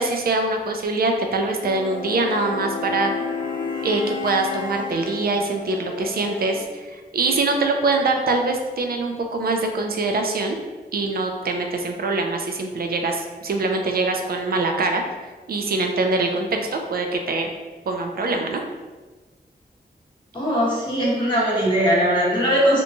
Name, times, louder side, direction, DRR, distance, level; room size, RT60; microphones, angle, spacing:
voice 1, 0.0-3.1 3.8-10.6 10.9-15.0 15.5-17.5 17.9-18.6, right 3 dB, 65° right, 4 dB, 0.4 m, -23 dB
sound 1, 1.6-6.7, left 4 dB, 55° left, 0.4 m, -31 dB
voice 2, 20.3-22.8, equal, 30° left, -7 dB, 0.8 m, -20 dB
2.9 x 2.2 x 2.6 m, 1.3 s
wide cardioid pair, 100°, 17 cm